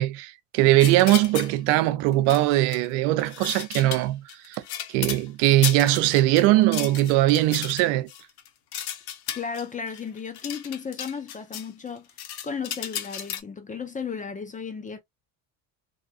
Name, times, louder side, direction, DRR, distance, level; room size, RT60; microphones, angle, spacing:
voice 1, 0.0-4.6 4.9-8.1, right 15 dB, 75° right, 0.5 m, -21 dB
sound 1, 0.8-1.5 2.1-2.9 3.2-5.2 5.6-11.7 12.0-13.4, left 10 dB, 55° left, 0.7 m, -34 dB
voice 2, 9.3-12.1 12.4-15.0, left 6 dB, 20° left, 0.5 m, -34 dB
2.7 x 2.2 x 2.6 m
supercardioid pair, 90°, 46 cm